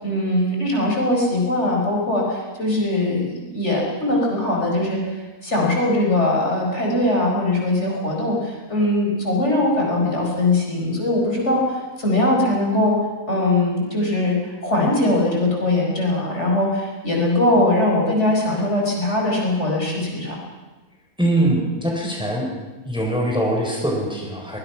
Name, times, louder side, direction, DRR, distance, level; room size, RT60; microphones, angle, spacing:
voice 1, 0.0-5.2 5.4-12.9 13.3-20.4, left 1 dB, 45° left, -2 dB, 5.5 m, -21 dB
voice 2, 21.2-22.5 22.9-24.6, right 1 dB, 5° right, -1 dB, 4.3 m, -22 dB
24.0 x 20.0 x 5.9 m, 1.2 s
omnidirectional pair, 1.6 m